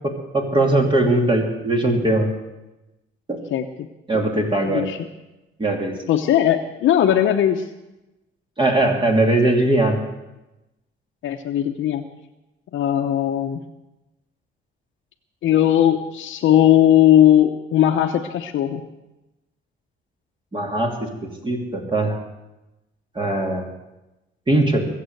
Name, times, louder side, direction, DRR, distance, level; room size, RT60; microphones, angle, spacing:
voice 1, 0.3-2.3 3.3-3.4 4.1-4.9 5.6-5.9 8.6-10.0 20.5-21.1 21.4-22.2 23.1-23.7 24.5-24.8, right 2 dB, 25° right, 2 dB, 2.9 m, -20 dB
voice 2, 3.5-3.9 4.1-4.2 4.7-5.1 6.1-7.6 11.2-12.0 12.7-13.6 15.4-18.8, left 11 dB, 75° left, 1 dB, 0.9 m, -18 dB
22.0 x 7.7 x 7.9 m, 0.99 s
cardioid pair, 90°, 20 cm